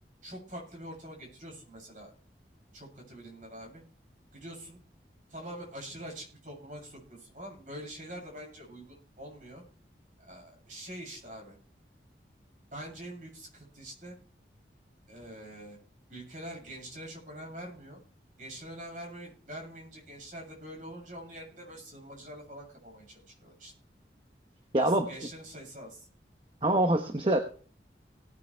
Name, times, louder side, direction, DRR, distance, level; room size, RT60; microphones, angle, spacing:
voice 1, 0.2-2.1 2.7-3.8 4.3-4.8 5.3-9.6 10.2-11.6 12.7-14.2 15.1-15.8 16.1-18.0 18.4-23.7 24.8-26.1, right 1 dB, 45° right, -1 dB, 7.4 m, -45 dB
voice 2, 24.7-25.1 26.6-27.4, right 1 dB, 30° right, 6 dB, 1.0 m, -24 dB
18.5 x 9.4 x 3.4 m, 0.42 s
head